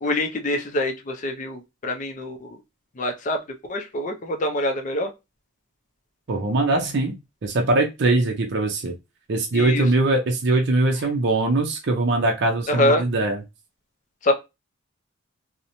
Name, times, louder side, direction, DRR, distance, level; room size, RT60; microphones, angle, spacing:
voice 1, 0.0-2.5 3.0-3.4 3.7-5.1 9.5-9.9 12.7-13.0 14.2-14.3, left 1 dB, 35° left, 5 dB, 0.4 m, -24 dB
voice 2, 6.3-8.9 9.3-13.4, right 2 dB, 50° right, 2 dB, 0.5 m, -22 dB
2.8 x 2.0 x 2.6 m, 0.24 s
head